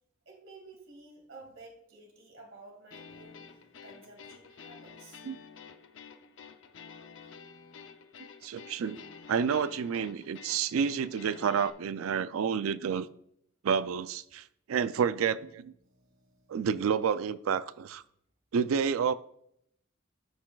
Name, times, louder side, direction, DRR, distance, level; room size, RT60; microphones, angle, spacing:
voice 1, 0.3-5.2 15.7-16.6, right 2 dB, 65° right, -1 dB, 2.2 m, -53 dB
sound 1, 2.9-11.7, left 6 dB, 65° left, 0.6 m, -50 dB
voice 2, 8.4-9.0 9.3-13.1 13.6-15.7 16.5-18.0 18.5-19.1, right 7 dB, 85° right, 14 dB, 0.4 m, -29 dB
13.5 x 6.1 x 2.3 m, 0.71 s
head